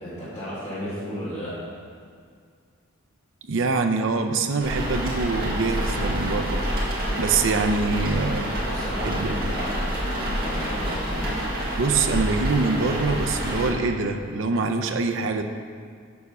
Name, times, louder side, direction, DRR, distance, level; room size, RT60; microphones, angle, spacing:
voice 1, 0.0-1.6 8.6-10.0 10.2-11.5, equal, 30° left, -10 dB, 2.0 m, -34 dB
voice 2, 3.4-6.6 7.2-8.6 9.0-9.4 11.8-15.4, right 4 dB, 60° right, 6 dB, 0.5 m, -24 dB
sound 1, 4.6-13.7, equal, 45° right, 1.8 m, -27 dB
7.0 x 4.8 x 6.5 m, 2.1 s
head